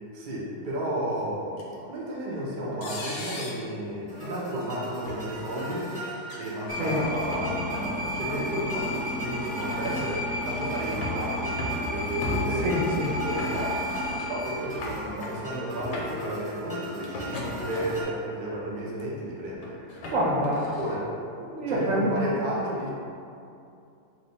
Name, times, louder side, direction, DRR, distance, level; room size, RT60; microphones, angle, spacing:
voice 1, 0.1-5.9 6.4-12.7 13.2-19.8 20.7-21.1 21.7-22.9, right 1 dB, 80° right, -5 dB, 0.4 m, -33 dB
sound 1, 1.6-1.7 2.8-3.7 4.5-4.7 5.1-5.2 6.2-6.5 7.1-7.6 8.8-8.9 9.6-10.1 10.7-11.2 11.6-11.9 12.2-12.7 13.4-13.9 14.2-14.3 14.6-15.3 15.7-16.2 17.0-18.1 18.7-19.0 19.6-20.9, left 2 dB, 80° left, 1.1 m, -36 dB
sound 2, 4.1-18.0, right 1 dB, 5° right, 0.8 m, -41 dB
sound 3, 6.7-14.6, left 1 dB, 55° left, 0.7 m, -32 dB
voice 2, 12.5-13.1 20.1-20.7 21.4-22.1, equal, 65° right, -4 dB, 0.9 m, -27 dB
3.0 x 2.1 x 4.0 m, 2.6 s
omnidirectional pair, 1.7 m